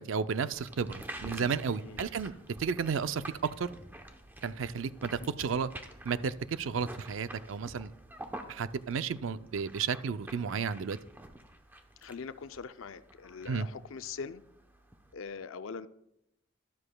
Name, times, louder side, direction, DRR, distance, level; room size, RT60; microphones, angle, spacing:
voice 1, 0.0-2.3 2.6-3.7 4.4-5.7 6.0-7.9 8.5-11.0 13.5-13.7, right 6 dB, 65° right, 13 dB, 0.4 m, -33 dB
sound 1, 0.5-15.1, right 1 dB, 10° right, 0.8 m, -48 dB
voice 2, 12.0-14.4 15.1-15.9, left 5 dB, 70° left, 12 dB, 0.5 m, -42 dB
13.0 x 12.0 x 2.3 m, 0.83 s
head